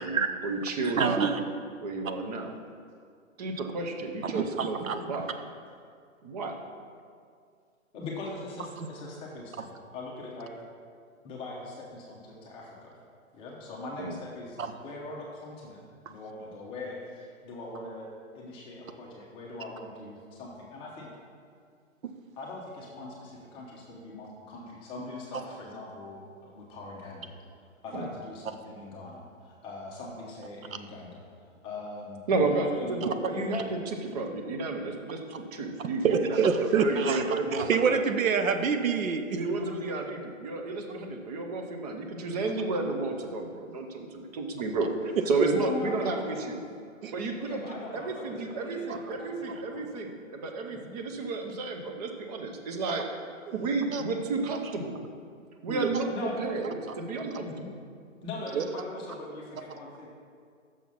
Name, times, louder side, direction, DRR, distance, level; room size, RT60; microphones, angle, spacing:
voice 1, 0.0-1.3 1.8-2.5 3.4-4.8 5.1-5.3 6.2-6.6 14.0-14.1 27.9-28.1 32.3-38.0 39.3-46.6 47.1-47.6 47.9-53.0 53.6-55.0 55.6-57.8, right 3 dB, 30° right, 4 dB, 0.7 m, -32 dB
voice 2, 0.8-1.4 4.2-5.0 8.8-8.9 14.6-14.7 22.0-22.1 36.0-37.2 37.5-39.4 45.2-45.5 47.0-47.1 52.9-53.0 53.5-53.6 53.9-54.0 55.7-55.9 58.5-58.6, right 6 dB, 80° right, 8 dB, 0.8 m, -27 dB
voice 3, 7.9-10.5 11.2-13.0 13.3-15.8 16.1-18.1 18.3-21.1 22.4-27.4 27.8-31.3 31.6-33.0 33.3-33.5 45.5-46.5 47.4-49.9 50.7-50.9 56.1-56.4 57.4-57.7 58.2-60.1, left 2 dB, 15° left, -3 dB, 0.7 m, -41 dB
6.4 x 5.8 x 5.5 m, 2.1 s
hypercardioid pair, 140°, 40 cm